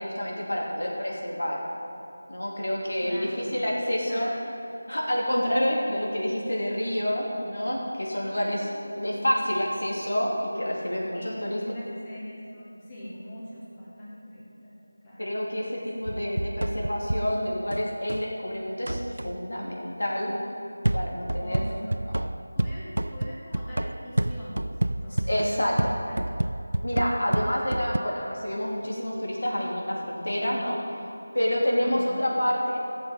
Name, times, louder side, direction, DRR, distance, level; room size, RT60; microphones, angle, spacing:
voice 1, 0.0-1.6 2.3-4.3 4.9-8.7 9.0-11.6 15.2-20.3 20.9-21.7 22.2-22.3 25.3-25.9 26.8-30.8 31.3-32.8, equal, 85° left, -3 dB, 3.1 m, -28 dB
voice 2, 3.0-3.5 4.1-4.4 8.3-8.8 9.2-9.3 11.1-14.7 15.0-15.3 15.5-15.9 21.4-22.0 22.6-26.2 27.2-27.4 31.8-32.3, equal, 15° left, -9 dB, 2.4 m, -42 dB
sound 1, 16.0-18.3 18.9-19.4 20.8-28.0, right 1 dB, 80° right, 0.3 m, -29 dB
15.0 x 7.5 x 5.2 m, 2.9 s
figure-of-eight pair, 170°, 0 cm